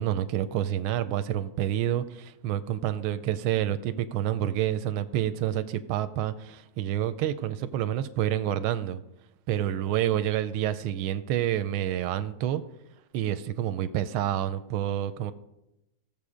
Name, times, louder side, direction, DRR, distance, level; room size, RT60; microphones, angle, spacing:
voice 1, 0.0-9.0 9.5-12.6 13.1-15.3, right 11 dB, 90° right, 12 dB, 1.4 m, -28 dB
15.5 x 7.3 x 4.9 m, 0.91 s
omnidirectional pair, 2.2 m